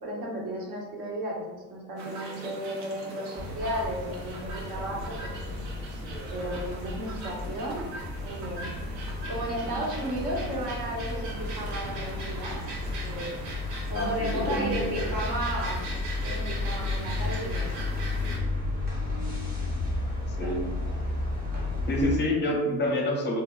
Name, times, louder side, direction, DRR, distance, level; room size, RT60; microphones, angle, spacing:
voice 1, 0.0-5.4 6.3-7.9 8.2-8.6 9.3-12.6 13.0-13.5 13.9-15.8 16.2-17.7 20.4-20.5, right 1 dB, 55° right, -3 dB, 1.1 m, -34 dB
sound 1, 2.0-18.4, right 2 dB, 70° right, 0.7 m, -40 dB
sound 2, 3.4-22.2, left 2 dB, 20° right, 0.7 m, -33 dB
voice 2, 13.9-15.1 20.4-20.6 21.9-23.4, left 1 dB, 25° left, 0 dB, 0.6 m, -27 dB
3.4 x 2.1 x 2.2 m, 1.1 s
supercardioid pair, 90°, 42 cm